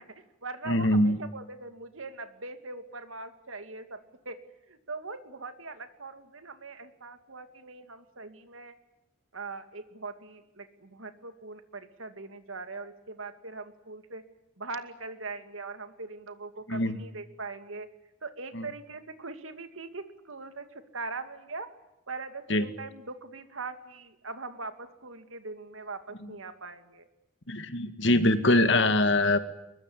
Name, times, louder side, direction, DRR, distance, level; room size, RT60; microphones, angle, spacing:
voice 1, 0.0-4.0 4.3-4.4 4.7-8.7 9.3-14.2 14.6-17.9 18.2-21.7 22.1-27.1, right 3 dB, 75° right, 9 dB, 2.5 m, -41 dB
voice 2, 0.7-1.2 16.7-17.0 18.5-18.7 22.5-22.6 27.5-29.4, left 1 dB, 60° left, 10 dB, 2.0 m, -23 dB
23.5 x 21.0 x 9.9 m, 0.91 s
head